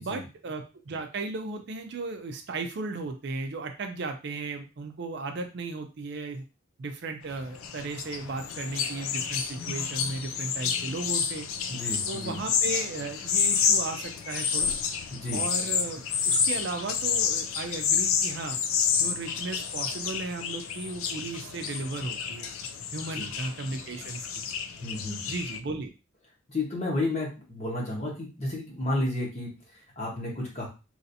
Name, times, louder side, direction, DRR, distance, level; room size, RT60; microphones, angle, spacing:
voice 1, 0.0-6.4 6.8-11.5 11.8-14.7 15.3-18.6 19.0-22.5 22.9-24.4 25.3-25.9, right 3 dB, 55° right, 5 dB, 0.4 m, -35 dB
sound 1, 7.3-25.6, left 7 dB, 75° left, 0.4 m, -29 dB
voice 2, 11.7-12.4 15.1-15.4 23.1-23.3 24.8-25.3 26.5-30.7, left 2 dB, 30° left, -3 dB, 1.1 m, -32 dB
3.2 x 2.6 x 2.7 m, 0.30 s
head